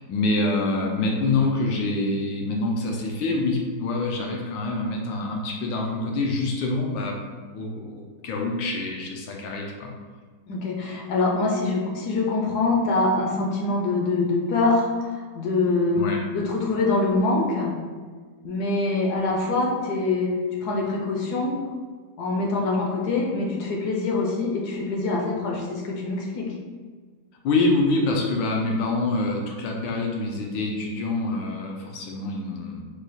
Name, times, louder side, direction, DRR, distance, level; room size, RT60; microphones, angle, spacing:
voice 1, 0.0-7.2 7.5-9.9 16.0-16.2 27.4-32.8, left 2 dB, 90° left, 0 dB, 1.4 m, -26 dB
voice 2, 10.5-16.0 16.3-17.7 18.4-20.4 20.6-21.5 22.2-26.5, left 3 dB, 70° left, -1 dB, 1.1 m, -24 dB
4.8 x 2.3 x 4.1 m, 1.5 s
omnidirectional pair, 2.0 m